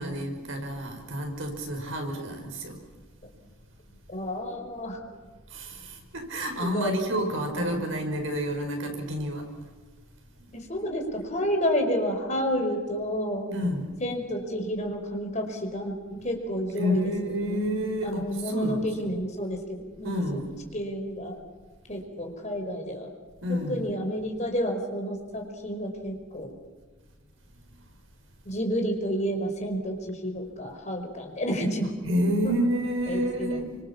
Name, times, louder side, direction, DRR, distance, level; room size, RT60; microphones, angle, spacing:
voice 1, 0.0-2.8 5.5-9.5 13.5-14.0 16.8-19.1 20.0-20.7 23.4-23.9 32.0-33.8, equal, 70° right, 5.9 m, -29 dB
voice 2, 4.1-5.0 6.6-7.8 10.5-13.5 14.0-17.1 17.4-20.4 20.7-21.4 21.9-23.1 23.5-26.5 28.5-31.9 33.1-33.6, equal, 35° left, 5.2 m, -30 dB
30.0 x 25.5 x 7.4 m
head